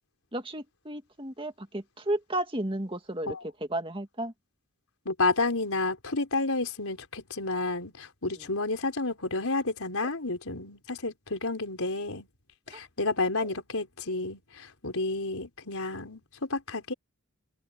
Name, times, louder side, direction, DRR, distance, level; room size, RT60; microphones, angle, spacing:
voice 1, 0.3-3.4 3.7-4.3 8.4-8.5 12.7-12.8, right 1 dB, 25° right, 2.3 m, -33 dB
voice 2, 5.1-12.3 12.7-16.9, left 3 dB, 75° left, 4.3 m, -30 dB
open air
head